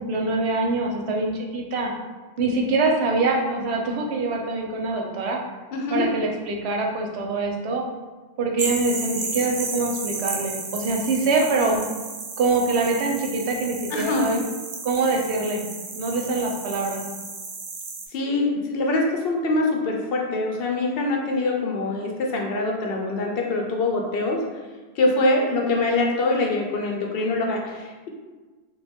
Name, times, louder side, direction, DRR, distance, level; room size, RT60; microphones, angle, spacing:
voice 1, 0.0-1.9 2.4-5.4 5.9-7.8 8.4-11.7 12.4-14.4 14.8-15.6 16.0-17.0, right 3 dB, 90° right, 1 dB, 0.9 m, -24 dB
voice 2, 5.7-6.1 11.6-11.8 13.9-14.4 18.1-24.4 25.0-28.1, left 2 dB, 70° left, 1 dB, 0.8 m, -24 dB
sound 1, 8.6-18.1, right 3 dB, 50° right, 0.5 m, -33 dB
3.1 x 2.2 x 3.4 m, 1.3 s
omnidirectional pair, 1.1 m